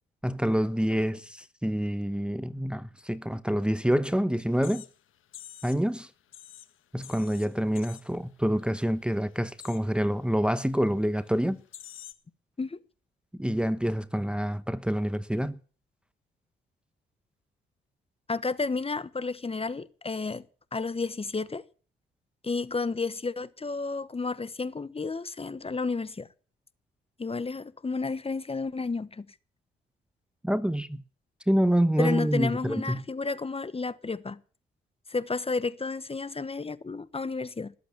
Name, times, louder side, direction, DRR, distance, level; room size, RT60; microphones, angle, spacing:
voice 1, 0.2-4.8 5.6-6.1 6.9-11.6 13.4-15.6 30.4-31.0 31.5-33.0, equal, 5° right, 1.0 m, -27 dB
sound 1, 4.4-5.9 6.2-8.3 8.6-8.9 9.2-9.9 10.6-10.7 11.3-11.4 11.7-12.1, left 11 dB, 75° left, 1.4 m, -48 dB
voice 2, 18.3-20.5 20.7-21.6 22.4-26.3 27.2-29.3 32.0-34.4 35.1-37.7, left 4 dB, 30° left, 1.1 m, -31 dB
19.5 x 8.3 x 7.3 m
supercardioid pair, 55°, 21 cm